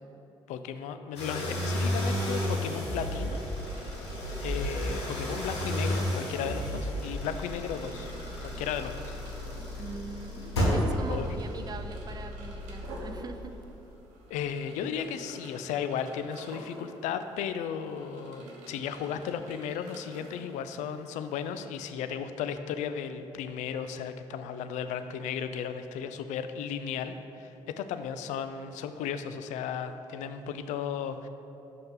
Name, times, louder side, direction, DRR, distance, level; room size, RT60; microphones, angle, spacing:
voice 1, 0.5-3.4 3.8-4.0 4.4-8.1 8.4-9.2 11.1-11.3 14.3-31.3, left 7 dB, 65° left, 9 dB, 0.4 m, -35 dB
sound 1, 1.2-13.5, equal, 90° left, 0.9 m, -32 dB
sound 2, 2.1-21.6, right 1 dB, 70° right, 1.0 m, -50 dB
voice 2, 9.8-13.6, right 4 dB, 30° right, 8 dB, 0.5 m, -42 dB
5.8 x 5.3 x 3.7 m, 2.9 s
hypercardioid pair, 50°, 14 cm